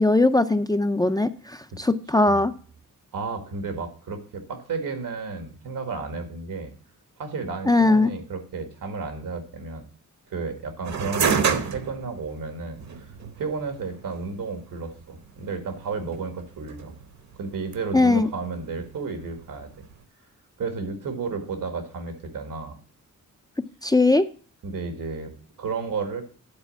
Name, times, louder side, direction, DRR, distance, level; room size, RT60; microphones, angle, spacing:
voice 1, 0.0-2.5 7.7-8.1 17.9-18.3 23.8-24.2, left 2 dB, 15° left, 10 dB, 0.3 m, -20 dB
voice 2, 3.1-6.7 7.2-9.8 10.3-13.1 13.4-16.9 17.4-19.7 20.6-22.8 24.6-26.2, right 4 dB, 90° right, 7 dB, 1.8 m, -32 dB
sound 1, 10.8-20.0, right 6 dB, 60° right, 1.0 m, -31 dB
9.7 x 4.2 x 6.9 m, 0.41 s
wide cardioid pair, 145°, 32 cm